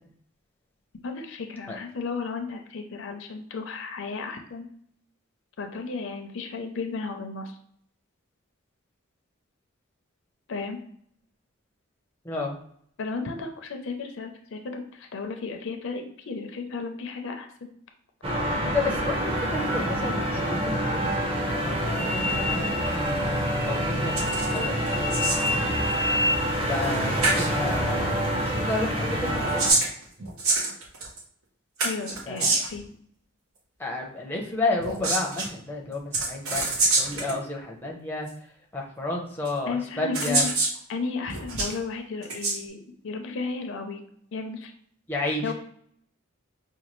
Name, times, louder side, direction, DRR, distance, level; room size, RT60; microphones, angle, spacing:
voice 1, 1.0-4.7 5.6-7.6 10.5-10.8 13.0-17.7 31.8-32.9 39.7-40.5 40.9-44.0 44.3-44.7 45.4-45.5, left 4 dB, 60° left, 5 dB, 0.5 m, -34 dB
sound 1, 18.2-29.7, equal, 25° right, 0.7 m, -26 dB
sound 2, 18.6-28.6, right 7 dB, 60° right, 0.5 m, -40 dB
voice 2, 18.7-21.1 21.4-25.8 26.6-29.7 32.3-32.6 33.8-38.3 38.7-40.5 45.1-45.5, left 2 dB, 10° left, -1 dB, 0.5 m, -32 dB
sound 3, 24.2-24.6 24.9-25.6 26.8-27.0 27.2-27.5 29.3-31.2 31.8-32.8 34.8-35.5 36.1-37.4 38.3-38.4 39.5-39.6 40.1-40.8 41.3-41.7 42.2-42.6, right 3 dB, 85° right, 0.9 m, -26 dB
5.1 x 2.2 x 3.0 m, 0.65 s
head